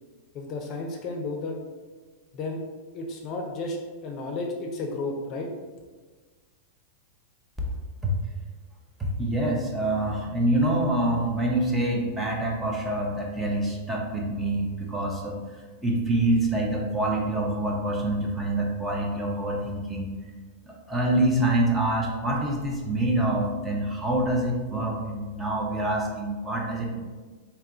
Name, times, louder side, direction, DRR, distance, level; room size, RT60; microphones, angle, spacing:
voice 1, 0.3-1.6 2.3-2.6 2.9-5.5, left 2 dB, 40° left, 2 dB, 0.6 m, -32 dB
voice 2, 9.0-15.4 15.8-20.1 20.7-27.0, right 1 dB, 10° right, -2 dB, 0.8 m, -26 dB
3.5 x 2.9 x 3.5 m, 1.4 s
hypercardioid pair, 120°, 0 cm